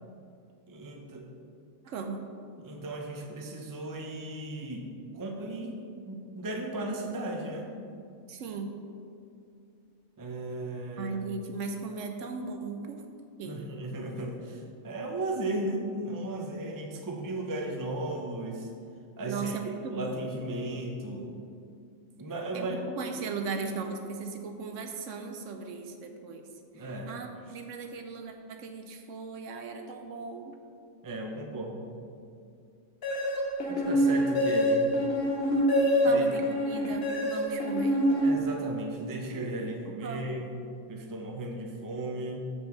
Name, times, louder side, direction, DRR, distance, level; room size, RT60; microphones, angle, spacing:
voice 1, 0.7-1.3 2.6-5.8 6.1-7.7 10.2-11.2 13.4-18.7 19.2-21.4 22.2-22.8 26.7-27.1 31.0-31.9 33.7-35.0 36.1-36.2 38.2-42.5, right 1 dB, 20° right, 1 dB, 0.5 m, -36 dB
voice 2, 1.8-2.2 8.3-8.7 11.0-13.0 13.4-13.6 19.3-20.1 22.5-26.5 26.8-30.5 36.0-38.0 39.3-39.5 40.0-40.5, right 4 dB, 70° right, 5 dB, 0.9 m, -37 dB
sound 1, 33.0-38.8, equal, 50° left, 1.2 m, -26 dB
6.9 x 6.8 x 4.1 m, 2.4 s
omnidirectional pair, 1.4 m